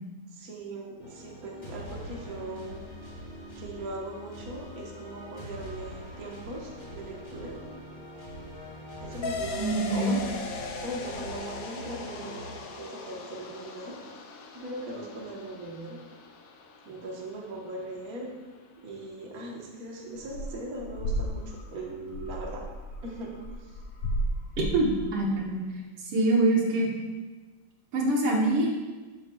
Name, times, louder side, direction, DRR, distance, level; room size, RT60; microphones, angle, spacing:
voice 1, 0.3-2.8 3.5-7.6 9.0-10.3 10.8-14.0 14.5-16.0 16.8-18.3 18.8-22.6 23.0-23.3 23.6-23.7, right 1 dB, 45° right, -1 dB, 1.6 m, -39 dB
sound 1, 1.0-12.6, equal, 25° left, 2.1 m, -43 dB
sound 2, 9.2-18.2, left 4 dB, 65° left, 0.8 m, -40 dB
voice 2, 9.6-10.2 24.6-25.6 26.1-26.9 27.9-28.7, right 2 dB, 80° right, -1 dB, 2.3 m, -24 dB
sound 3, 20.2-20.5 20.8-25.4, equal, 85° left, 2.0 m, -33 dB
13.5 x 7.8 x 2.3 m, 1.3 s
omnidirectional pair, 2.4 m